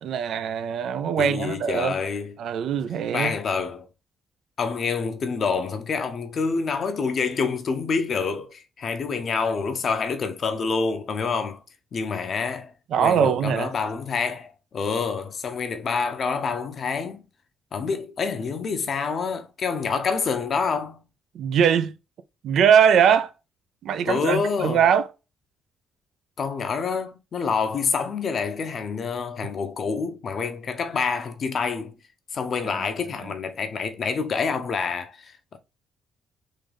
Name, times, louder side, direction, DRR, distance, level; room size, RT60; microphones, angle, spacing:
voice 1, 0.0-2.0 2.4-3.3 12.9-13.7 21.3-21.9 22.4-23.3 23.8-25.1, right 8 dB, 70° right, 0.4 m, -21 dB
voice 2, 1.2-2.4 3.1-3.9 4.6-11.6 11.9-12.7 13.0-17.2 17.7-21.0 24.0-24.8 26.4-32.0 32.3-35.6, left 5 dB, 50° left, 0.7 m, -27 dB
3.7 x 2.6 x 3.3 m
cardioid pair, 90°, 0 cm